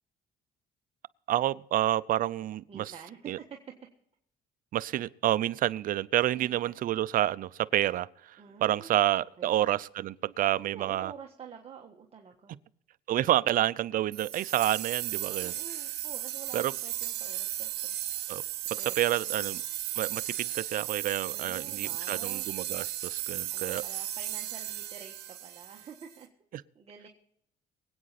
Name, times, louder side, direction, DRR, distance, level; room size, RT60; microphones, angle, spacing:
voice 1, 1.3-2.9 3.3-3.4 4.7-11.1 13.1-15.5 16.5-16.7 18.3-18.4 19.0-19.6 19.9-23.8, right 13 dB, 55° right, 0.5 m, -29 dB
voice 2, 2.7-3.4 6.3-6.8 8.4-9.7 10.7-12.6 15.4-17.9 18.8-18.9 19.3-19.4 21.3-22.5 23.5-26.3 26.7-27.1, right 6 dB, 35° right, 1.5 m, -48 dB
sound 1, 14.1-26.1, right 13 dB, 75° right, 1.8 m, -35 dB
23.5 x 8.6 x 4.2 m
cardioid pair, 110°, 17 cm